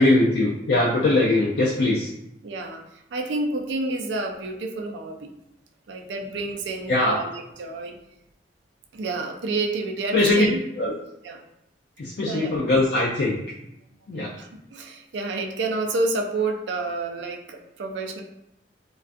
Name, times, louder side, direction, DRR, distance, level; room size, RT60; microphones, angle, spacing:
voice 1, 0.0-2.1 6.9-7.2 10.1-10.5 10.8-10.9 12.0-13.4 14.1-14.3, left 2 dB, 60° left, -4 dB, 0.4 m, -21 dB
voice 2, 2.4-5.3 5.9-8.0 8.9-10.6 11.2-11.4 12.3-12.5 14.1-18.2, right 3 dB, 80° right, 2 dB, 0.4 m, -29 dB
2.4 x 2.3 x 2.4 m, 0.83 s
head